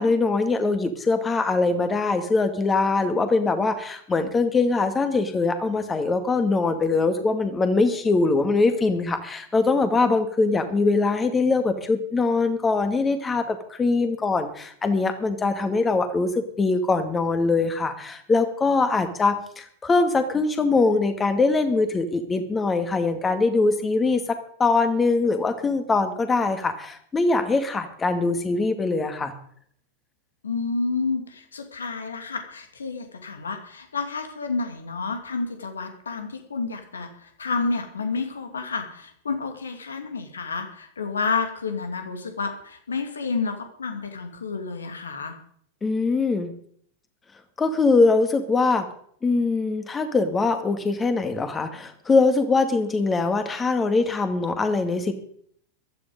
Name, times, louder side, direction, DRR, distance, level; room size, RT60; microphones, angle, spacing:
voice 1, 0.0-29.3 45.8-46.5 47.6-48.9 49.2-55.1, left 3 dB, 15° left, 8 dB, 2.1 m, -22 dB
voice 2, 30.4-45.4, left 4 dB, 70° left, 6 dB, 2.6 m, -30 dB
15.0 x 12.5 x 5.3 m, 0.62 s
figure-of-eight pair, 90°, 0 cm